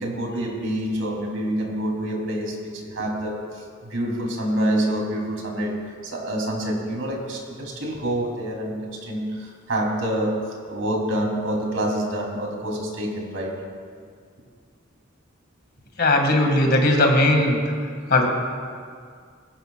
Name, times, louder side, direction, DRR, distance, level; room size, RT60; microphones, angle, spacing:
voice 1, 0.0-3.6 3.9-13.5, right 1 dB, 85° right, -1 dB, 3.3 m, -27 dB
voice 2, 16.0-17.6 18.1-18.3, left 1 dB, 55° left, 2 dB, 2.1 m, -18 dB
21.5 x 16.5 x 2.4 m, 2.1 s
head